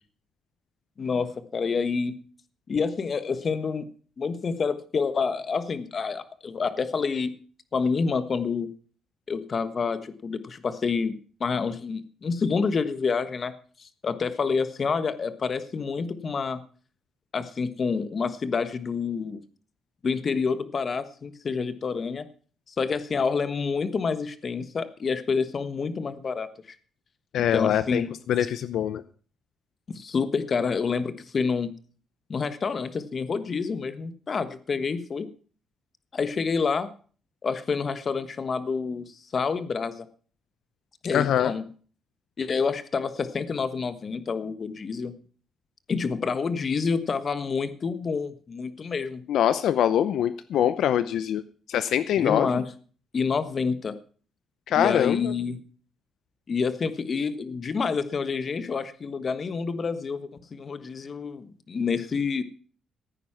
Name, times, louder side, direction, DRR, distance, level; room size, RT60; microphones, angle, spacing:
voice 1, 1.0-2.1 2.7-3.9 4.2-7.3 7.7-8.7 9.3-11.1 11.4-13.5 13.8-16.6 17.3-19.4 20.0-22.3 22.7-26.5 27.5-28.1 29.9-31.7 32.3-35.3 36.1-36.9 37.4-39.0 39.3-40.1 41.0-41.6 42.4-45.1 45.9-49.2 52.2-52.6 53.1-53.9 54.8-55.6 56.5-62.4, left 5 dB, 40° left, 12 dB, 1.3 m, -28 dB
voice 2, 27.3-29.0 41.1-41.5 49.3-51.4 51.7-52.6 54.7-55.3, left 10 dB, 75° left, 13 dB, 0.7 m, -24 dB
15.5 x 9.3 x 5.8 m, 0.43 s
cardioid pair, 125°, 0 cm